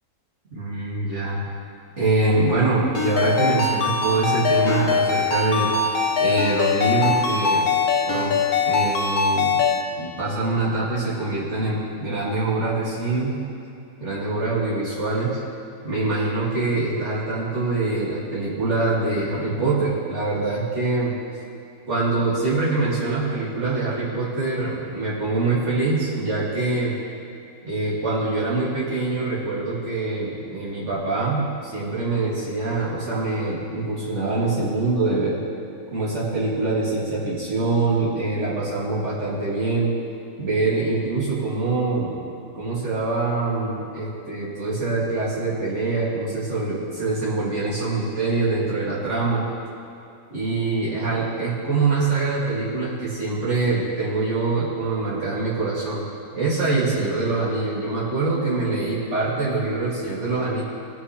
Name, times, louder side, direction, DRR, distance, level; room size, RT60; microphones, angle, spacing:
voice 1, 0.5-1.4 2.0-5.7 6.2-7.6 8.1-8.3 8.7-9.6 10.0-13.4 14.0-15.4 15.8-21.1 21.9-26.9 27.7-35.4 35.9-39.9 40.4-42.2 42.5-49.4 50.3-56.0 56.3-60.6, right 3 dB, 50° right, -7 dB, 2.7 m, -24 dB
Ringtone, 2.9-9.8, left 5 dB, 80° left, 1.4 m, -22 dB
18.5 x 6.5 x 3.2 m, 2.6 s
omnidirectional pair, 1.6 m